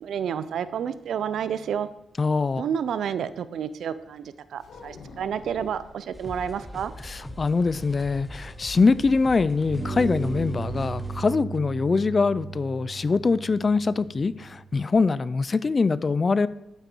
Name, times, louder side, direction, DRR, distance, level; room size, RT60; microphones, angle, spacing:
voice 1, 0.0-1.9 2.6-6.9, right 8 dB, 75° right, 14 dB, 0.7 m, -30 dB
voice 2, 2.2-2.6 7.0-16.5, left 4 dB, 30° left, 17 dB, 0.5 m, -23 dB
sound 1, 4.6-6.0 7.8-8.7 9.0-9.1 9.5-9.7, left 4 dB, 65° left, 2.0 m, -47 dB
sound 2, 6.1-11.2, left 1 dB, 5° left, 1.3 m, -41 dB
sound 3, 8.0-9.2 9.7-14.9, right 4 dB, 55° right, 3.6 m, -36 dB
11.5 x 9.1 x 4.6 m, 0.84 s
cardioid pair, 115°, 0 cm